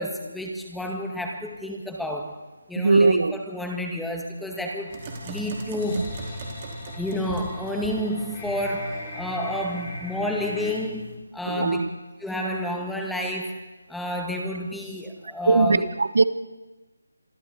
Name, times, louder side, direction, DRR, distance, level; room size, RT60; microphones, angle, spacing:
voice 1, 0.0-2.4 2.7-6.2 6.9-11.8 12.2-15.9, left 1 dB, ahead, 1 dB, 1.9 m, -30 dB
voice 2, 2.8-3.4 5.9-6.0 11.5-11.9 15.5-16.2, right 3 dB, 65° right, 14 dB, 1.1 m, -20 dB
sound 1, 4.5-10.8, left 2 dB, 25° left, 5.5 m, -40 dB
sound 2, 4.9-11.2, right 2 dB, 30° right, 4.2 m, -39 dB
26.5 x 25.0 x 4.2 m, 1.2 s
figure-of-eight pair, 165°, 0 cm